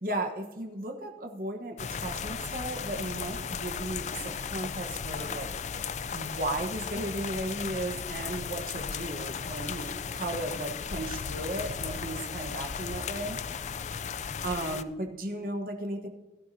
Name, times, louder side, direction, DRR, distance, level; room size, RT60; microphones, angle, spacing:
voice 1, 0.0-5.5 6.1-13.4 14.4-16.1, right 1 dB, 50° right, 3 dB, 1.2 m, -35 dB
sound 1, 1.8-14.8, left 6 dB, 40° left, 0.4 m, -36 dB
17.5 x 12.0 x 2.8 m, 1.2 s
head